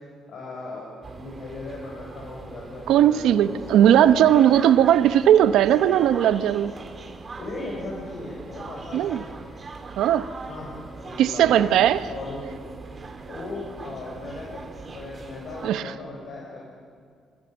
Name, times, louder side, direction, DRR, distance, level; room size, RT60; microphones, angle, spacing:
voice 1, 0.3-5.0 7.4-9.2 10.5-11.8 12.1-12.7 13.3-16.6, left 2 dB, 65° left, 5.6 m, -37 dB
sound 1, 1.0-15.7, right 3 dB, 35° right, 2.8 m, -41 dB
voice 2, 2.9-6.8 8.9-9.2 10.0-10.3 11.2-12.0 15.6-15.8, right 10 dB, 85° right, 0.8 m, -18 dB
24.5 x 22.5 x 7.1 m
cardioid pair, 90°, 0 cm